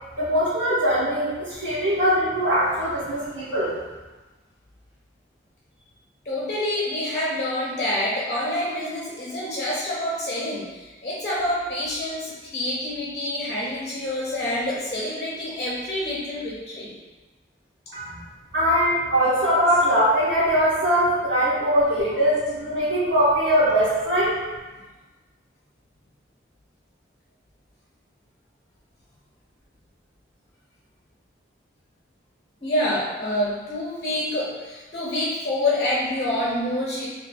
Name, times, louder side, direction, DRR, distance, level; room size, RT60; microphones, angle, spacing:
voice 1, 0.2-3.7 17.9-18.2 18.5-24.4, equal, 75° right, -12 dB, 1.1 m, -21 dB
voice 2, 6.2-16.9 19.4-19.5 32.6-37.1, left 1 dB, 35° left, -6 dB, 0.6 m, -27 dB
2.7 x 2.6 x 4.1 m, 1.2 s
head